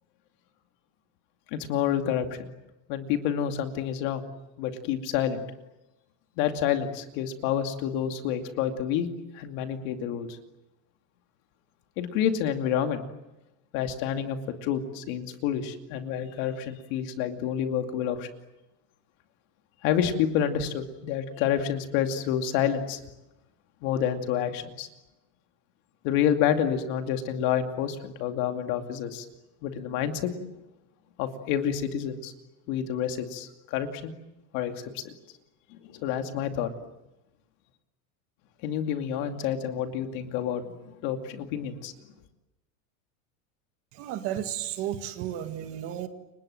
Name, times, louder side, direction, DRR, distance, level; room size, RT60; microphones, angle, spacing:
voice 1, 1.5-2.5 2.9-4.2 4.6-5.4 6.4-9.1 9.3-10.3 12.0-13.0 13.7-18.3 19.8-23.0 23.8-24.9 26.0-29.2 29.6-30.3 31.2-32.3 32.7-34.1 34.5-35.1 35.9-36.7 38.6-40.6 41.0-41.9, left 9 dB, 45° left, 6 dB, 2.5 m, -28 dB
voice 2, 43.9-46.1, right 11 dB, 35° right, 8 dB, 1.9 m, -33 dB
29.5 x 25.5 x 7.8 m, 0.99 s
supercardioid pair, 175°, 40 cm